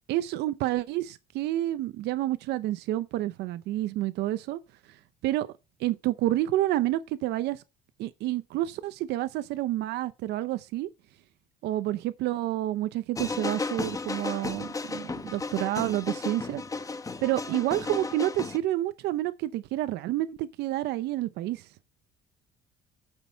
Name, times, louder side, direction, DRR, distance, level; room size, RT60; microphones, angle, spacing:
voice 1, 0.1-4.6 5.2-5.5 5.8-7.6 8.0-10.9 11.6-16.6 17.2-21.7, right 14 dB, 80° right, 0.7 m, -29 dB
sound 1, 13.2-18.6, left 3 dB, 20° left, 0.9 m, -34 dB
8.9 x 6.3 x 5.2 m
cardioid pair, 110°, 17 cm